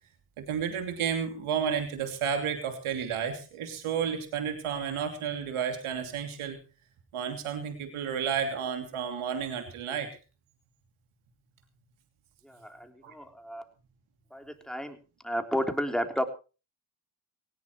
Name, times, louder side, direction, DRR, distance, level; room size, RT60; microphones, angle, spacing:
voice 1, 0.4-6.6 7.1-10.1 13.0-13.1, right 7 dB, 80° right, 5 dB, 2.9 m, -31 dB
voice 2, 12.4-13.6 14.3-15.0 15.2-16.2, equal, ahead, 5 dB, 3.5 m, -32 dB
19.0 x 17.0 x 3.1 m, 0.34 s
supercardioid pair, 45°, 49 cm